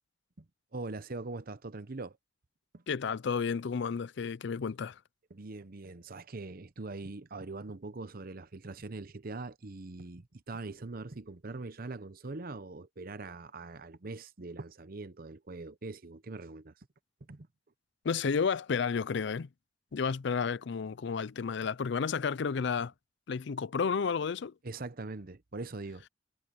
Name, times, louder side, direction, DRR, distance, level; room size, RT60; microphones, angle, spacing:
voice 1, 0.7-2.2 2.7-2.8 5.3-16.7 17.3-17.5 24.6-26.0, right 3 dB, 50° right, 0.8 m, -42 dB
voice 2, 2.9-5.0 18.0-19.5 19.9-22.9 23.3-24.5, left 6 dB, 65° left, 0.5 m, -31 dB
head